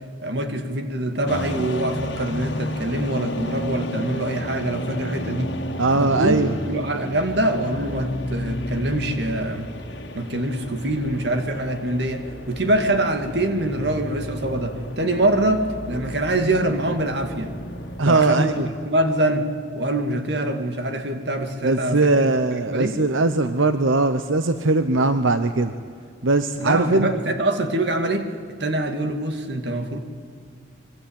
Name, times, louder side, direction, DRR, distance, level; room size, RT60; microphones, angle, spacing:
voice 1, 0.2-5.5 6.0-6.4 6.6-9.7 10.1-17.5 18.1-18.5 18.9-19.5 19.8-22.3 22.7-23.0 26.6-28.3 28.6-30.0, right 1 dB, 60° right, 6 dB, 2.3 m, -24 dB
sound 1, 1.3-18.0, left 1 dB, 60° left, 2.2 m, -32 dB
voice 2, 5.8-6.5 18.0-18.7 21.6-25.7 26.2-27.1, right 2 dB, 90° right, 10 dB, 0.9 m, -20 dB
25.5 x 22.5 x 8.9 m, 2.1 s
head